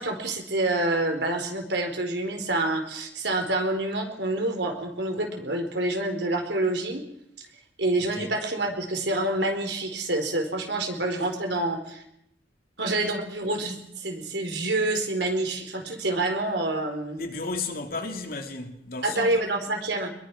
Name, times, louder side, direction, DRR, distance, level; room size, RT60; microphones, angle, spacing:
voice 1, 0.0-7.0 7.4-7.5 7.8-12.0 12.8-17.2 19.0-20.1, right 2 dB, 70° right, 4.5 m, -27 dB
voice 2, 8.0-8.4 17.2-19.4, left 3 dB, 55° left, 3.2 m, -34 dB
25.5 x 21.5 x 6.2 m
head